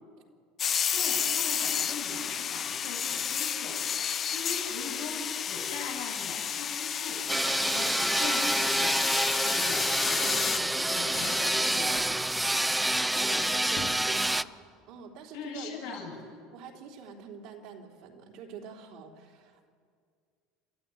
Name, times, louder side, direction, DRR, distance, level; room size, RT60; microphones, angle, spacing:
sound 1, 0.6-10.6, left 8 dB, 40° left, 0.8 m, -31 dB
voice 1, 0.9-3.8 4.3-12.1 15.3-16.2, left 4 dB, 85° left, -2 dB, 7.8 m, -40 dB
sound 2, 7.3-14.4, right 1 dB, 5° right, 0.5 m, -27 dB
sound 3, 7.5-8.3 8.5-8.6 8.9-12.4 12.7-12.8 13.3-14.0, left 8 dB, 65° left, 2.3 m, -44 dB
voice 2, 13.1-14.5 14.9-16.0 16.5-19.7, right 6 dB, 70° right, 1 dB, 3.6 m, -45 dB
28.5 x 13.5 x 9.6 m, 2.2 s
supercardioid pair, 90°, 0 cm